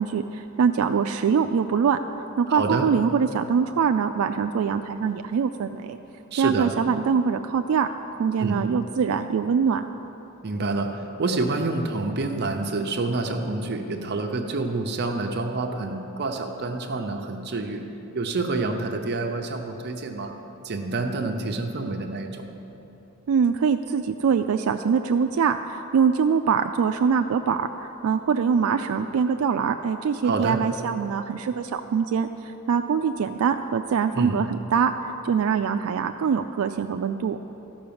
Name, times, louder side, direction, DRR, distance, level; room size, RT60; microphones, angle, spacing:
voice 1, 0.0-2.0 2.4-6.0 6.4-9.8 23.3-37.4, right 6 dB, 75° right, 7 dB, 0.3 m, -23 dB
voice 2, 2.5-2.9 6.3-6.7 8.4-8.6 10.4-17.8 18.1-20.3 20.6-22.5 30.2-30.6 34.1-34.4, right 3 dB, 50° right, 4 dB, 0.7 m, -27 dB
13.0 x 5.6 x 7.0 m, 3.0 s
head